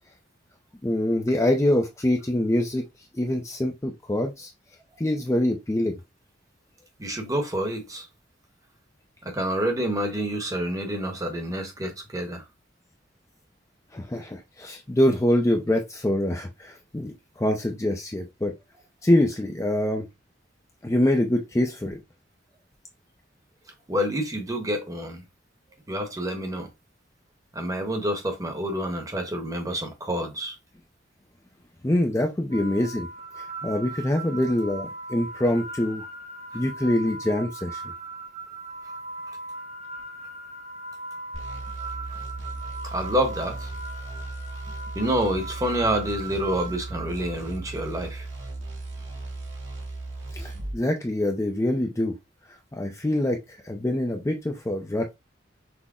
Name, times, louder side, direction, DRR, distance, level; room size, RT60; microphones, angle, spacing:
voice 1, 0.8-2.8 3.1-4.5 5.0-6.0 13.9-18.5 19.0-20.0 20.8-22.0 31.8-33.1 33.4-36.0 36.5-37.8 50.3-52.2 52.5-55.2, left 1 dB, 15° left, 0.5 m, -25 dB
voice 2, 7.0-8.1 9.2-12.5 23.9-25.2 25.9-26.7 27.5-30.6 42.8-43.7 44.9-48.3, equal, 20° right, 1.0 m, -28 dB
sound 1, 32.5-47.6, right 2 dB, 35° right, 0.8 m, -39 dB
sound 2, 41.3-50.8, right 2 dB, 80° right, 1.8 m, -37 dB
6.0 x 2.1 x 3.6 m
head